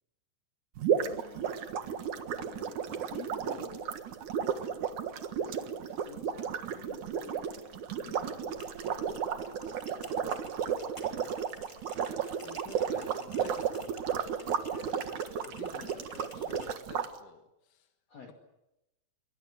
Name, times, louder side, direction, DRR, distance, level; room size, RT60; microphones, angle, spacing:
sound 1, 0.8-17.1, right 7 dB, 55° right, 2.4 m, -33 dB
voice 1, 0.9-1.5 2.3-4.0 5.2-8.7 8.9-10.4 15.7-16.0 18.1-18.3, left 5 dB, 40° left, 6 dB, 3.1 m, -51 dB
voice 2, 1.4-1.8 2.1-2.5 8.0-8.2 10.6-11.4 12.4-15.1 15.4-17.9, left 8 dB, 60° left, 5 dB, 2.6 m, -53 dB
sound 2, 8.4-16.7, left 1 dB, 20° left, 0.8 m, -54 dB
27.0 x 23.5 x 8.0 m, 0.91 s
omnidirectional pair, 5.0 m